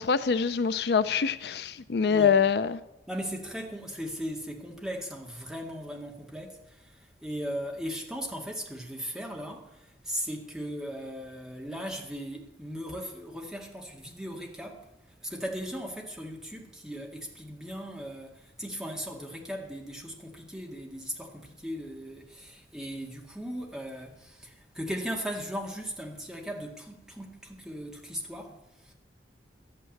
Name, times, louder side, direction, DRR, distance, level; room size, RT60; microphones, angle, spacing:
voice 1, 0.0-2.8, left 6 dB, 65° left, 0.5 m, -25 dB
voice 2, 2.1-2.4 3.1-14.9 15.2-28.9, equal, 5° right, 2.0 m, -38 dB
12.5 x 9.0 x 7.8 m
head